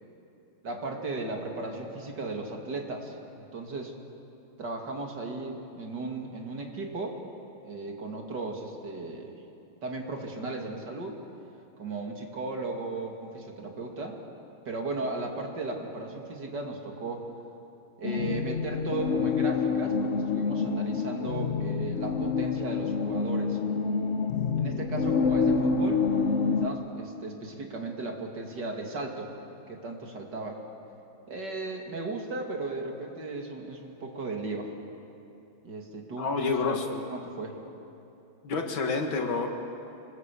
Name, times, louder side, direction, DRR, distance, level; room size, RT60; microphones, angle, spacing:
voice 1, 0.6-3.1 3.5-3.9 4.6-7.2 7.6-9.4 9.8-11.2 11.8-14.2 14.6-17.3 18.0-23.6 24.6-26.0 26.6-29.3 29.7-30.6 31.3-34.7 35.6-37.6, right 3 dB, 55° right, 2 dB, 2.9 m, -36 dB
sound 1, 18.0-26.7, left 5 dB, 45° left, 0.9 m, -27 dB
voice 2, 36.2-36.8 38.4-39.5, left 4 dB, 70° left, 3 dB, 2.7 m, -28 dB
26.0 x 21.0 x 8.5 m, 2.8 s
omnidirectional pair, 2.3 m